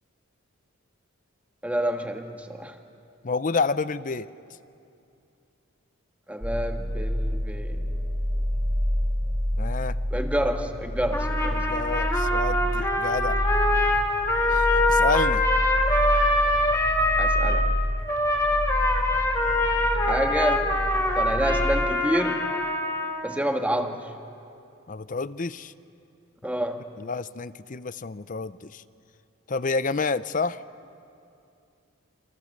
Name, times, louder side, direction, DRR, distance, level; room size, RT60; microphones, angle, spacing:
voice 1, 1.6-2.8 6.3-7.9 10.1-11.6 17.2-17.7 20.0-20.7 21.1-22.5 23.2-24.1 26.4-26.9, equal, 5° right, 4 dB, 1.5 m, -28 dB
voice 2, 3.2-4.3 9.6-10.0 11.5-13.4 14.5-15.5 24.9-25.7 27.0-28.8 29.5-30.6, left 4 dB, 40° left, 15 dB, 0.6 m, -29 dB
sound 1, 6.4-21.8, equal, 30° right, 3.3 m, -28 dB
Trumpet, 11.1-17.6 18.1-23.4, left 1 dB, 15° left, 2.0 m, -24 dB
29.0 x 27.0 x 6.6 m, 2.6 s
head